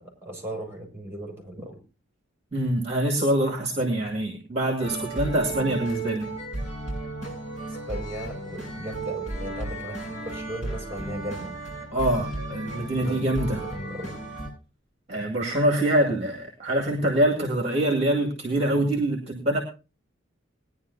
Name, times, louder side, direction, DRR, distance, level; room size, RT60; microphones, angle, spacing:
voice 1, 0.0-1.8 7.7-11.6 13.0-14.2, right 1 dB, 10° right, 1 dB, 5.5 m, -37 dB
voice 2, 2.5-6.3 11.9-13.6 15.1-19.6, right 1 dB, 30° right, 3 dB, 2.1 m, -25 dB
sound 1, 4.8-14.5, right 2 dB, 35° left, 6.9 m, -34 dB
20.5 x 10.5 x 2.7 m, 0.31 s
head